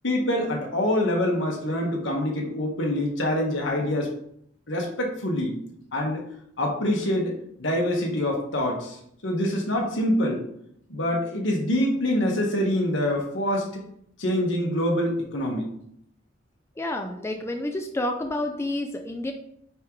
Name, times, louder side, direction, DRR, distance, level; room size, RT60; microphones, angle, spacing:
voice 1, 0.0-4.1 4.7-5.6 5.9-6.2 6.6-7.3 7.6-9.0 9.2-10.4 10.9-13.8 14.2-15.7, left 1 dB, 70° left, 0 dB, 1.5 m, -25 dB
voice 2, 16.8-19.3, left 1 dB, 15° left, 4 dB, 0.4 m, -29 dB
9.0 x 3.7 x 3.2 m, 0.70 s
head